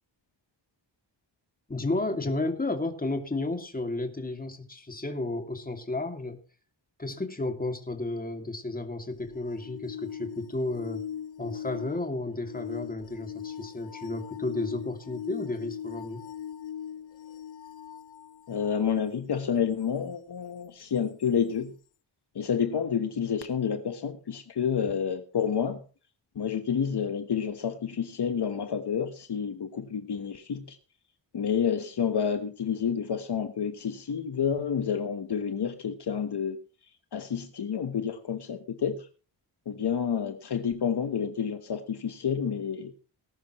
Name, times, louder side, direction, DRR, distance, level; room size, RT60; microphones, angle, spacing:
voice 1, 1.7-6.4 7.0-11.0 11.4-16.2, left 2 dB, 20° left, 2.5 m, -32 dB
sound 1, 9.1-18.9 21.2-21.3, left 9 dB, 75° left, 0.9 m, -40 dB
voice 2, 18.5-21.7 22.3-25.8 26.3-30.8 31.3-36.6 37.1-39.1 39.6-42.9, left 7 dB, 60° left, 1.3 m, -29 dB
19.0 x 11.0 x 3.1 m
wide cardioid pair, 110°, 45 cm